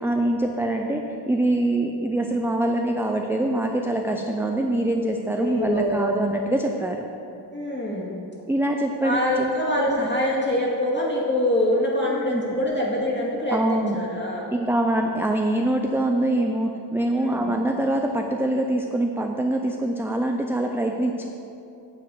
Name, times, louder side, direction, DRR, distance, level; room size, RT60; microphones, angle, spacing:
voice 1, 0.0-7.1 8.5-9.2 12.1-12.6 13.5-14.1 14.5-21.2, right 1 dB, 5° right, 2 dB, 0.4 m, -24 dB
voice 2, 5.3-6.1 7.5-8.2 9.0-14.5 17.2-17.5, left 1 dB, 25° left, -5 dB, 2.0 m, -24 dB
9.6 x 4.6 x 7.6 m, 2.8 s
wide cardioid pair, 115°, 45 cm